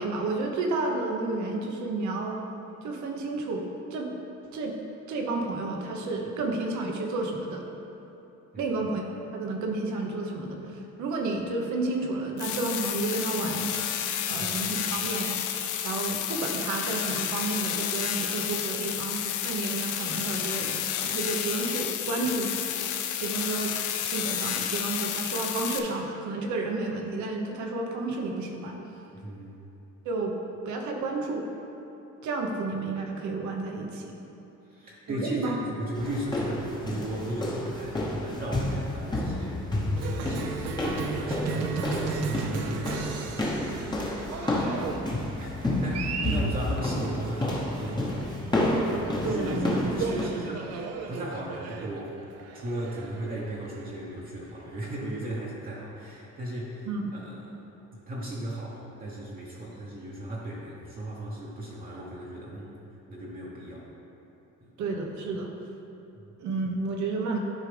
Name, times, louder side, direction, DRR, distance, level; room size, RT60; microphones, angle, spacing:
voice 1, 0.0-2.4 2.8-4.1 4.5-4.8 5.1-7.6 8.6-9.0 9.3-13.7 14.3-15.4 15.8-22.5 23.2-23.7 24.0-28.8 30.0-30.3 30.6-31.5 32.2-34.1 35.1-35.6 46.2-46.3 49.2-49.7 56.9-57.0 64.8-65.5 66.4-67.4, right 3 dB, 75° right, 2 dB, 1.1 m, -31 dB
sound 1, 12.4-25.8, left 10 dB, 80° left, 0.6 m, -31 dB
voice 2, 29.2-29.6 34.7-48.5 48.8-52.2 52.5-57.6 58.1-62.7 63.1-63.9 64.6-64.7 66.1-66.3, right 1 dB, 30° right, -6 dB, 1.0 m, -36 dB
sound 2, 35.9-50.2, left 1 dB, 15° left, 1.0 m, -30 dB
Cheering, 40.0-55.1, right 5 dB, 55° right, 0.6 m, -36 dB
11.5 x 4.9 x 3.4 m, 3.0 s
cardioid pair, 150°, 30 cm